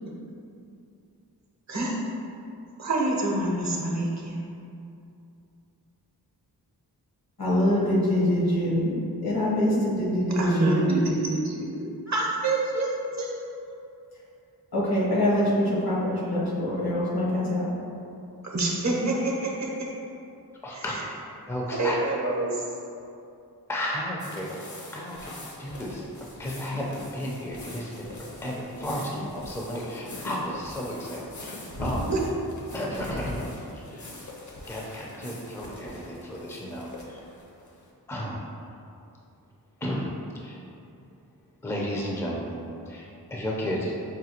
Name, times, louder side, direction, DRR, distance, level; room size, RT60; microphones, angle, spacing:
voice 1, 2.8-4.4 10.4-13.9 18.4-19.9 20.7-21.0 21.7-22.6 32.1-32.2, right 2 dB, 45° right, -2 dB, 0.7 m, -27 dB
voice 2, 7.4-11.0 14.7-17.7, left 1 dB, 65° left, -6 dB, 1.1 m, -24 dB
voice 3, 20.6-20.9 21.5-22.0 23.7-25.3 25.6-32.1 32.7-34.1 34.7-37.2 38.1-38.5 39.8-40.6 41.6-43.9, equal, 5° left, -3 dB, 0.5 m, -33 dB
sound 1, 24.2-37.8, left 1 dB, 50° left, 0.7 m, -40 dB
5.1 x 2.2 x 2.8 m, 2.6 s
cardioid pair, 50°, 39 cm